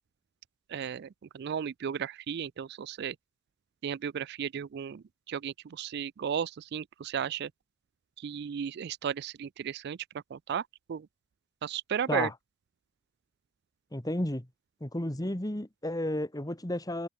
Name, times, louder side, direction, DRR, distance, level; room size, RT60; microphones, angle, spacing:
voice 1, 0.7-1.1 1.3-3.2 3.8-7.5 8.2-10.0 10.3-11.1 11.6-12.3, right 8 dB, 55° right, 0.3 m, -34 dB
voice 2, 13.9-14.5 14.8-17.1, left 1 dB, 20° left, 1.7 m, -32 dB
head